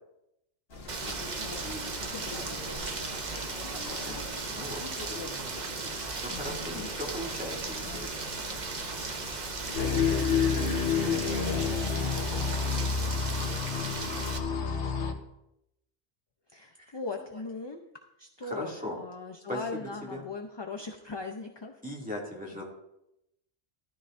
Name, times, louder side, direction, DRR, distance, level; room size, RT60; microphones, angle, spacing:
sound 1, 0.7-12.8, left 3 dB, 60° left, 1.5 m, -43 dB
Rain, 0.9-14.4, right 4 dB, 45° right, 1.0 m, -37 dB
voice 1, 1.0-3.7 6.3-6.9 9.7-12.5 14.2-14.6 16.5-17.8 18.2-21.8 22.6-22.7, left 3 dB, 30° left, 4 dB, 0.6 m, -41 dB
voice 2, 4.0-4.8 5.9-8.2 18.4-19.0 19.5-19.8 20.1-20.2 21.8-22.6, equal, 5° right, -3 dB, 2.4 m, -38 dB
sound 2, 9.7-15.1, left 6 dB, 90° left, 1.3 m, -29 dB
13.5 x 13.0 x 2.6 m, 0.85 s
omnidirectional pair, 1.1 m